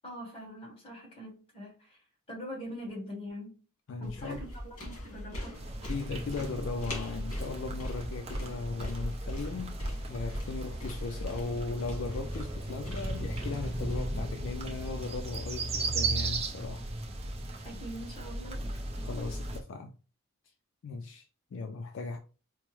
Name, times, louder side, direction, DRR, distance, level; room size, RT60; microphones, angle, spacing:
voice 1, 0.0-2.0 2.3-3.5 4.0-5.6 17.6-18.6, equal, 25° left, 1.3 m, -43 dB
voice 2, 3.9-4.4 5.9-9.8 10.1-16.9 19.0-20.0 20.8-22.2, left 4 dB, 60° left, 0.3 m, -37 dB
sound 1, 4.0-14.0, equal, 80° left, 1.5 m, -41 dB
sound 2, 5.5-19.6, right 2 dB, 30° right, 0.5 m, -36 dB
4.5 x 2.0 x 3.0 m
head